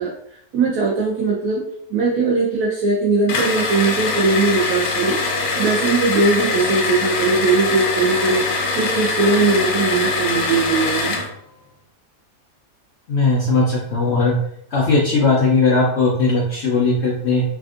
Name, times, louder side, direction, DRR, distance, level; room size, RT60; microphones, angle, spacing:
voice 1, 0.0-1.6 1.9-5.2 5.6-8.4 8.7-11.2, right 3 dB, 85° right, -4 dB, 1.2 m, -19 dB
sound 1, 3.3-11.3, left 4 dB, 85° left, 1.1 m, -23 dB
voice 2, 13.1-14.4 14.7-17.4, left 3 dB, 65° left, -3 dB, 0.6 m, -18 dB
3.4 x 2.4 x 2.4 m, 0.68 s
omnidirectional pair, 1.6 m